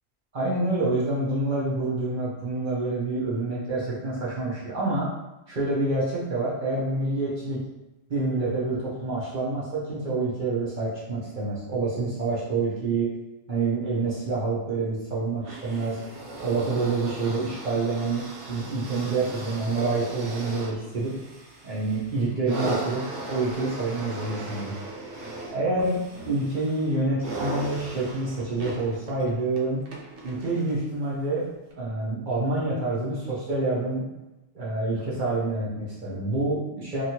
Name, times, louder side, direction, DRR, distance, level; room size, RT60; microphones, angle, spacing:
voice 1, 0.3-5.1 5.5-7.6 8.1-13.1 13.5-16.0 16.4-18.2 18.5-21.1 21.6-24.7 25.5-26.0 26.3-29.8 30.2-31.5 31.8-34.0 34.5-37.0, right 3 dB, 50° right, -7 dB, 0.8 m, -27 dB
sound 1, 15.4-30.9 31.7-31.8, right 1 dB, 85° right, 0.9 m, -37 dB
3.0 x 2.4 x 2.8 m, 1.0 s
omnidirectional pair, 1.1 m